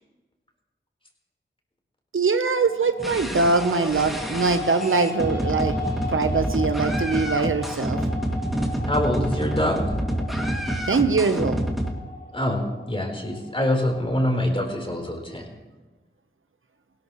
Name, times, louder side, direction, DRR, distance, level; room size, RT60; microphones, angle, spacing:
voice 1, 2.1-5.8 6.1-8.0 10.9-11.6, right 4 dB, 80° right, 9 dB, 0.9 m, -22 dB
sound 1, 2.6-14.8, left 2 dB, 55° left, 4.3 m, -37 dB
sound 2, 3.0-11.9, equal, ahead, 2.3 m, -28 dB
voice 2, 8.9-9.8 12.3-15.5, left 1 dB, 25° left, 1 dB, 4.0 m, -25 dB
18.5 x 17.0 x 3.2 m, 1.2 s
wide cardioid pair, 55°, 21 cm